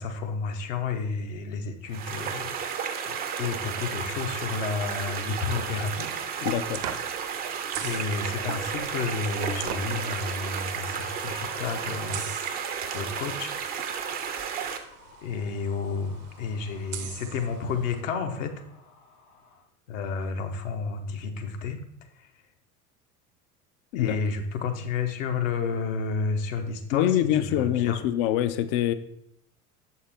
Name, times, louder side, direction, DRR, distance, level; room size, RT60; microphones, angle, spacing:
voice 1, 0.0-6.1 7.8-12.6 12.9-13.6 15.2-18.5 19.9-21.8 22.2-22.3 23.9-28.0, left 5 dB, 60° left, 5 dB, 0.8 m, -31 dB
sound 1, 1.9-14.8, right 7 dB, 20° right, 0.5 m, -33 dB
sound 2, 3.5-18.0, right 9 dB, 55° right, 0.7 m, -44 dB
voice 2, 6.4-6.9 23.9-24.2 26.9-28.9, left 11 dB, 40° left, 13 dB, 0.4 m, -25 dB
sound 3, 10.3-19.6, left 3 dB, 80° left, 2.3 m, -51 dB
6.6 x 4.4 x 3.4 m, 0.75 s
figure-of-eight pair, 75°, 45 cm